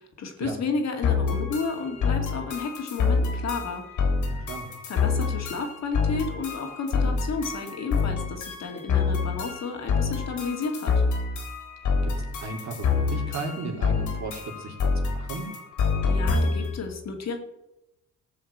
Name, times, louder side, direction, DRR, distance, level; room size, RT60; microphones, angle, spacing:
voice 1, 0.0-3.8 4.9-10.9 16.0-17.4, left 4 dB, 60° left, 4 dB, 2.5 m, -32 dB
sound 1, 1.0-16.8, left 5 dB, 80° left, 3.6 m, -27 dB
voice 2, 4.3-4.7 12.0-15.5, right 3 dB, 65° right, 2 dB, 3.1 m, -35 dB
14.5 x 5.7 x 8.1 m, 0.91 s
cardioid pair, 90°, 30 cm